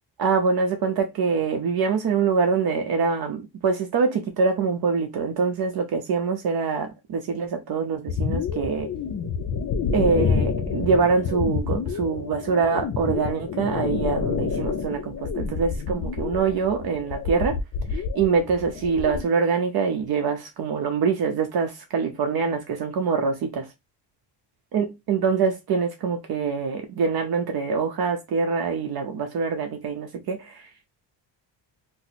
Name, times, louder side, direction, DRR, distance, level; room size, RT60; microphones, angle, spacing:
voice 1, 0.2-8.9 9.9-17.6 17.9-23.7 24.7-30.9, right 5 dB, 55° right, 0.6 m, -24 dB
sound 1, 8.1-19.2, left 5 dB, 40° left, 0.5 m, -28 dB
2.8 x 2.0 x 4.1 m
cardioid pair, 135°, 45 cm